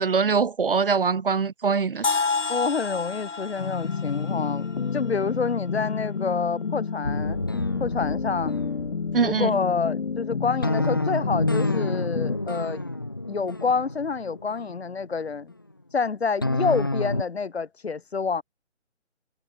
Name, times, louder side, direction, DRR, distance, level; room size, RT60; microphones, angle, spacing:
voice 1, 0.0-2.2 9.1-9.6, right 5 dB, 50° right, 1.1 m, -23 dB
sound 1, 2.0-5.9, left 4 dB, 85° left, 4.6 m, -30 dB
voice 2, 2.5-7.4 7.8-8.5 9.2-12.8 13.3-15.5 15.9-18.4, left 5 dB, 60° left, 2.6 m, -28 dB
sound 2, 3.6-12.4, left 5 dB, 45° left, 2.9 m, -30 dB
sound 3, 7.0-15.3 16.4-17.2, left 2 dB, 20° left, 0.7 m, -29 dB
hypercardioid pair, 175°, 35 cm